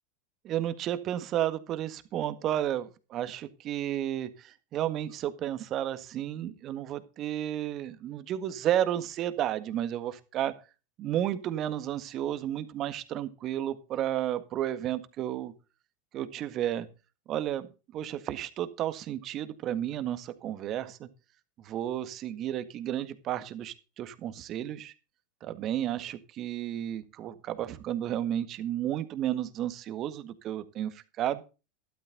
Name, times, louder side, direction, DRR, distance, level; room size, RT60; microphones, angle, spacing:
voice 1, 0.4-10.5 11.0-15.5 16.1-16.9 17.3-21.1 21.6-24.9 25.4-31.4, right 11 dB, 40° right, 12 dB, 1.7 m, -32 dB
13.0 x 12.5 x 4.0 m, 0.32 s
hypercardioid pair, 90°, 0 cm